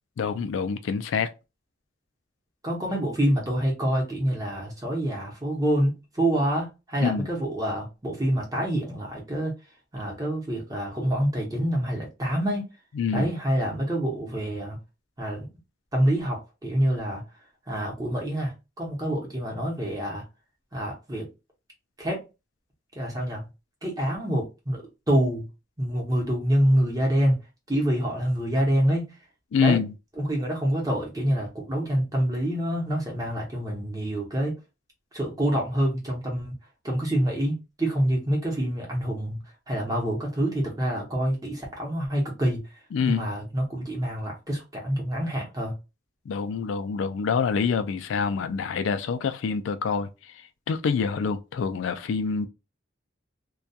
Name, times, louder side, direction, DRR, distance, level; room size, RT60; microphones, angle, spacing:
voice 1, 0.2-1.3 7.0-7.3 13.0-13.3 29.5-29.9 42.9-43.3 46.3-50.1 50.7-52.5, left 6 dB, 85° left, 0.3 m, -26 dB
voice 2, 2.6-9.5 9.9-12.7 13.1-14.8 15.2-15.5 15.9-17.2 17.7-20.2 20.7-21.3 22.0-22.2 22.9-23.4 23.8-25.5 25.8-27.4 27.7-29.1 29.6-29.8 30.2-34.6 35.1-36.5 36.8-39.4 39.7-42.6 43.1-45.7, equal, 20° right, 0.8 m, -26 dB
2.2 x 2.2 x 2.6 m
head